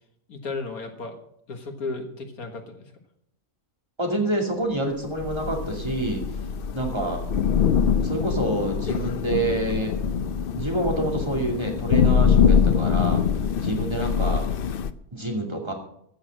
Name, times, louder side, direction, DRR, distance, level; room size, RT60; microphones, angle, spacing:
voice 1, 0.3-1.2 1.5-2.9, left 3 dB, 75° left, 5 dB, 2.1 m, -34 dB
voice 2, 4.0-6.2 6.7-7.2 8.0-10.0 10.5-13.2 13.6-14.5 15.1-15.7, right 1 dB, 20° right, 1 dB, 2.4 m, -27 dB
Thunder / Rain, 5.2-14.9, left 7 dB, 60° left, 0.6 m, -23 dB
14.5 x 6.3 x 7.7 m, 0.73 s
omnidirectional pair, 1.5 m